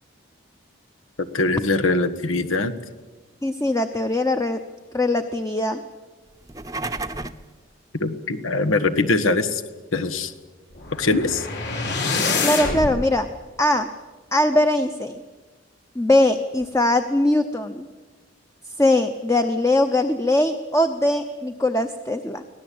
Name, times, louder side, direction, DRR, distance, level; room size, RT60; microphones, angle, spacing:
voice 1, 1.2-2.7 8.0-9.6 9.9-10.3 10.9-11.5, left 3 dB, 90° left, 10 dB, 1.6 m, -22 dB
voice 2, 3.4-4.6 4.9-5.8 12.4-13.3 13.6-13.9 14.3-15.2 16.0-17.9 18.8-22.4, left 1 dB, 15° left, 7 dB, 0.8 m, -21 dB
sound 1, 6.4-7.5, right 2 dB, 15° right, 0.8 m, -31 dB
sound 2, 10.8-12.9, left 4 dB, 55° left, 4.8 m, -25 dB
24.5 x 17.5 x 8.7 m, 1.3 s
head